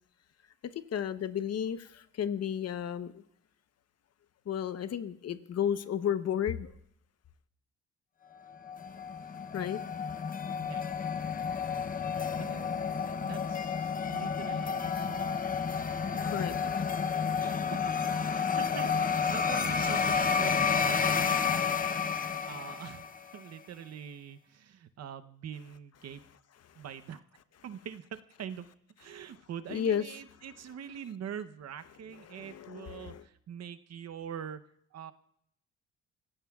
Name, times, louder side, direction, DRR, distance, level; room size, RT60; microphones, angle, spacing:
voice 1, 0.6-3.2 4.5-6.7 9.3-9.8 14.6-14.7 15.1-16.7 26.6-26.8 29.1-29.2 29.7-30.5 32.1-33.3, left 9 dB, 55° left, 12 dB, 0.9 m, -34 dB
sound 1, 8.7-23.3, left 6 dB, 30° left, 0.7 m, -31 dB
voice 2, 12.4-12.8 13.2-15.2 17.4-17.8 18.2-21.7 22.4-23.1 23.3-26.2 26.8-27.2 27.6-28.0 28.4-28.6 29.0-34.6 34.9-35.1, right 8 dB, 55° right, 10 dB, 0.8 m, -44 dB
26.0 x 15.5 x 2.4 m, 0.73 s
cardioid pair, 90°, 30 cm